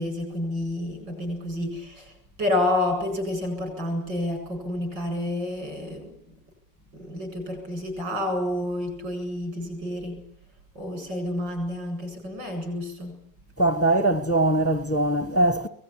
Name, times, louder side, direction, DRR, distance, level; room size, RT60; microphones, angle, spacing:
voice 1, 0.0-2.1 2.4-6.3 6.9-10.2 10.8-13.2, left 1 dB, 85° right, 8.9 m, -29 dB
voice 2, 13.6-15.7, right 2 dB, 20° left, 0.4 m, -22 dB
24.0 x 19.5 x 9.9 m
omnidirectional pair, 1.9 m